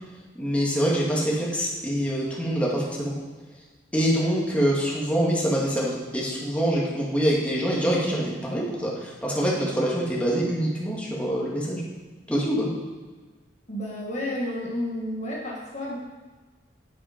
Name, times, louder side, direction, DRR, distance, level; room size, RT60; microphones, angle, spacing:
voice 1, 0.3-3.1 3.9-11.8 12.3-12.7, equal, 5° left, -5 dB, 2.2 m, -25 dB
voice 2, 13.7-16.0, left 1 dB, 35° left, -4 dB, 1.7 m, -31 dB
8.8 x 8.5 x 5.1 m, 1.3 s
head